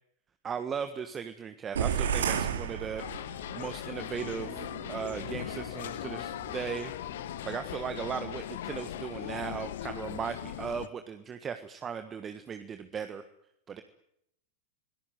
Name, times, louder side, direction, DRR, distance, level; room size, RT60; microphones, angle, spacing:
voice 1, 0.4-3.0 3.5-4.6 4.9-13.2 13.7-13.8, right 7 dB, 20° right, 9 dB, 1.5 m, -37 dB
sound 1, 1.8-3.6, right 8 dB, 65° right, 2.6 m, -30 dB
sound 2, 3.0-10.9, left 12 dB, 55° left, 1.0 m, -39 dB
sound 3, 4.2-8.7, right 5 dB, 40° right, 4.5 m, -48 dB
25.5 x 19.0 x 9.4 m, 0.76 s
figure-of-eight pair, 90°, 0 cm